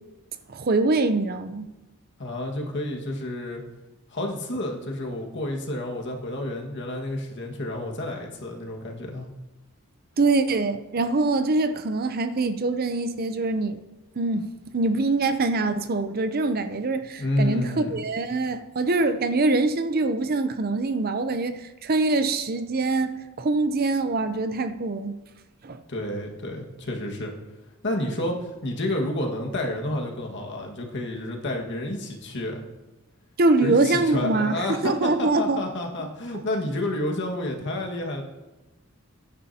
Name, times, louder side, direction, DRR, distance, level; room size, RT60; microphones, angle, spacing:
voice 1, 0.5-1.7 10.2-13.8 14.2-25.1 25.6-25.8 33.4-35.6, right 3 dB, 40° right, 0.5 m, -24 dB
voice 2, 2.2-3.6 4.1-9.3 17.2-18.0 25.9-27.3 27.8-32.6 33.6-38.2, left 1 dB, 55° left, 1.7 m, -30 dB
15.5 x 9.8 x 2.8 m
head